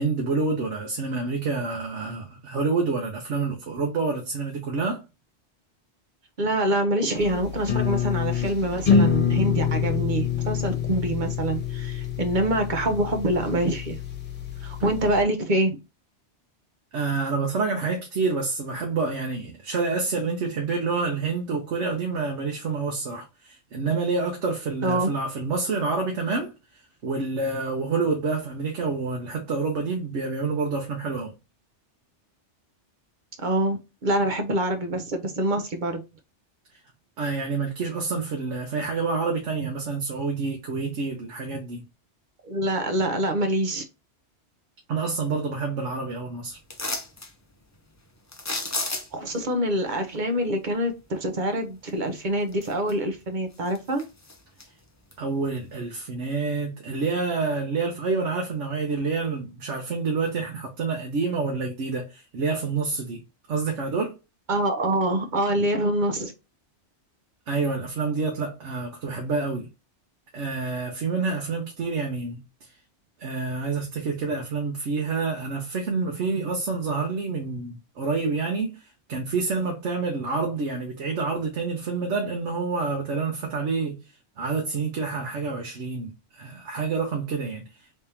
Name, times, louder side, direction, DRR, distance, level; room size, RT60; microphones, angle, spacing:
voice 1, 0.0-5.0 16.9-31.3 37.2-41.8 44.9-46.6 55.2-63.2 63.5-64.1 67.5-69.7 70.3-72.7 73.2-84.0 84.4-87.6, right 4 dB, 80° right, 1.2 m, -28 dB
voice 2, 6.4-14.0 14.6-15.8 24.8-25.1 33.4-36.0 42.4-43.8 49.1-54.0 64.5-66.3, right 1 dB, 45° right, 0.9 m, -25 dB
sound 1, 7.1-15.2, left 7 dB, 40° left, 1.3 m, -26 dB
sound 2, 46.7-47.3 48.3-49.3 51.9-52.0 52.5-53.2 53.5-54.7 55.1-55.2, left 2 dB, 20° left, 0.5 m, -32 dB
3.5 x 3.4 x 2.8 m
omnidirectional pair, 1.2 m